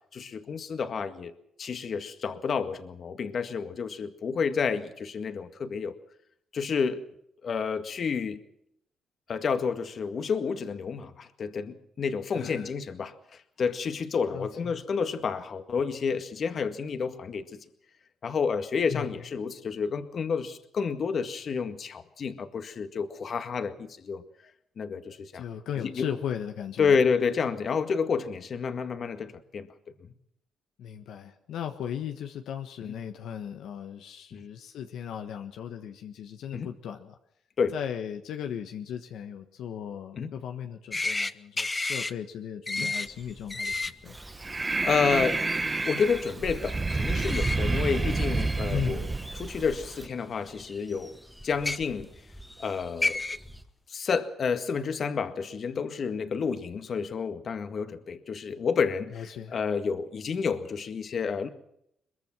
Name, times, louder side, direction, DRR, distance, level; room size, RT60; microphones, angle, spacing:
voice 1, 0.1-1.3 1.6-5.9 6.5-7.0 7.4-8.4 9.3-13.1 13.6-17.6 18.2-24.2 24.8-25.4 25.8-26.1 26.8-29.7 32.9-33.0 34.3-34.4 36.5-36.7 37.6-37.8 40.2-40.3 42.8-42.9 44.8-45.4 45.8-49.1 49.3-51.2 51.4-52.1 52.6-53.2 53.9-61.5, left 5 dB, 50° left, 9 dB, 1.9 m, -30 dB
voice 2, 12.3-12.7 14.3-14.7 18.9-19.1 25.3-27.0 30.8-37.2 37.7-43.7 44.0-44.2 48.7-49.1 59.1-59.6, left 9 dB, 80° left, 5 dB, 1.4 m, -37 dB
sound 1, 40.9-41.3 41.6-42.1 42.7-43.1 43.5-43.9 47.2-47.6 48.4-48.5 49.7-49.8 51.5-51.8 52.7-52.8 53.0-53.4, left 3 dB, 20° left, 1.0 m, -29 dB
sound 2, 43.0-53.6, equal, ahead, 2.0 m, -49 dB
Breathing, 44.1-50.1, right 3 dB, 25° right, 1.1 m, -29 dB
22.5 x 22.0 x 6.2 m, 0.74 s
cardioid pair, 90°, 0 cm